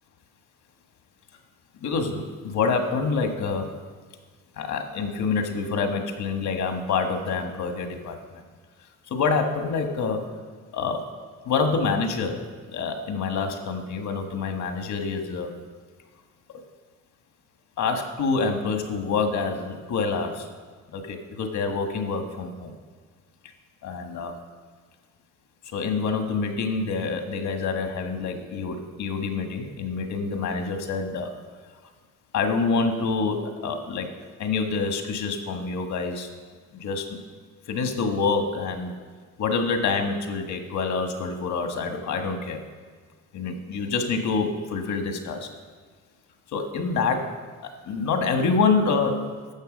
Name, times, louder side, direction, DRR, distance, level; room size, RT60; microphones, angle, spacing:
voice 1, 1.8-3.7 4.6-8.4 9.1-10.3 10.7-11.0 11.4-12.4 12.7-15.5 17.8-20.5 20.9-22.7 23.8-24.3 25.7-31.3 32.3-34.1 34.4-36.3 36.7-37.2 37.7-38.9 39.4-42.6 43.3-45.5 46.5-47.3 47.6-49.2, left 4 dB, 70° left, 5 dB, 1.5 m, -26 dB
13.0 x 6.8 x 5.2 m, 1.5 s
cardioid pair, 90°, 30 cm